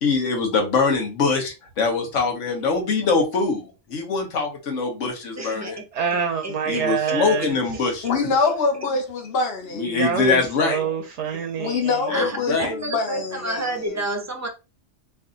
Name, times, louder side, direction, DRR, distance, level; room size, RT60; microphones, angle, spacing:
voice 1, 0.0-5.8 6.7-8.1 9.7-10.8 12.1-12.7, left 4 dB, 75° left, 1.3 m, -23 dB
voice 2, 5.4-5.8 6.4-7.8 10.8-10.9 12.1-14.5, right 2 dB, 30° right, 0.3 m, -31 dB
voice 3, 5.9-7.9 9.9-12.3, right 7 dB, 70° right, 0.9 m, -27 dB
voice 4, 8.0-10.0 11.6-14.0, left 4 dB, 55° left, 1.1 m, -25 dB
3.2 x 2.5 x 3.7 m
omnidirectional pair, 1.3 m